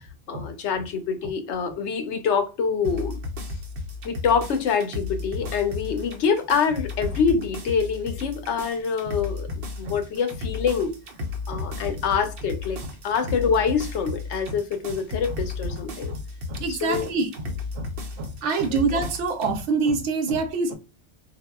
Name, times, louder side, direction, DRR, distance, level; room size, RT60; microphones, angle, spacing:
voice 1, 0.3-3.1 4.0-9.5 9.8-10.9 11.5-16.1 16.7-17.1 18.7-18.8, left 6 dB, 80° left, 0.9 m, -25 dB
sound 1, 2.8-19.5, left 3 dB, 60° right, 0.9 m, -34 dB
voice 2, 16.5-17.3 17.8-17.9 18.2-20.7, right 4 dB, 85° right, 0.9 m, -25 dB
3.7 x 2.1 x 2.2 m
omnidirectional pair, 1.2 m